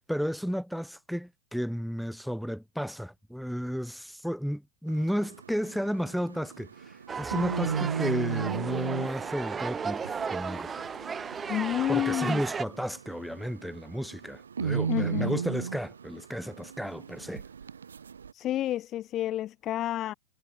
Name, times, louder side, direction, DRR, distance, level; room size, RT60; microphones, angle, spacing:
voice 1, 0.1-10.7 11.9-17.4, equal, ahead, 0.6 m, -33 dB
sound 1, 4.9-18.3, right 6 dB, 90° right, 0.3 m, -36 dB
sound 2, 7.1-12.6, right 6 dB, 20° right, 1.6 m, -34 dB
voice 2, 11.5-12.4 14.9-15.3 18.3-20.1, left 13 dB, 35° left, 0.3 m, -29 dB
hypercardioid pair, 105°, 0 cm